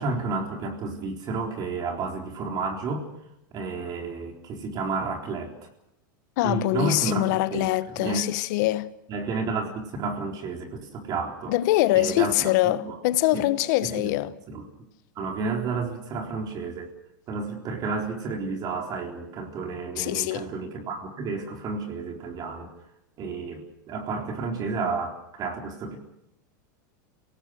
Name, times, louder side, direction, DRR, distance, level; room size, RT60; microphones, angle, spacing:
voice 1, 0.0-3.1 3.5-5.5 6.4-8.3 9.1-11.5 11.9-12.5 12.8-13.0 13.3-13.4 13.8-14.2 14.5-14.7 15.2-16.9 17.3-22.7 23.2-26.0, right 4 dB, 40° right, 4.0 m, -31 dB
voice 2, 6.4-8.9 11.5-14.3 20.0-20.5, left 17 dB, 65° left, 1.1 m, -24 dB
26.5 x 18.0 x 6.4 m
supercardioid pair, 120°, 11 cm